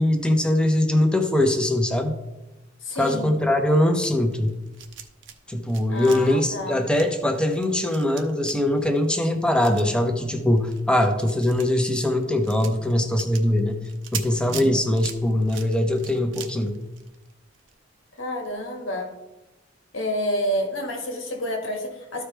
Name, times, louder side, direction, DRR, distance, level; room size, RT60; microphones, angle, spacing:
voice 1, 0.0-2.1 3.0-4.5 5.5-13.8 14.1-16.8, left 1 dB, 5° left, 5 dB, 0.8 m, -22 dB
voice 2, 2.8-3.4 5.9-6.9 14.5-14.8 18.2-19.1 19.9-22.2, equal, 85° left, 2 dB, 1.7 m, -29 dB
sound 1, 4.3-5.4 5.6-17.7 18.1-18.2 18.5-18.6, right 9 dB, 65° right, 0.8 m, -41 dB
13.5 x 4.8 x 3.3 m, 1.0 s
head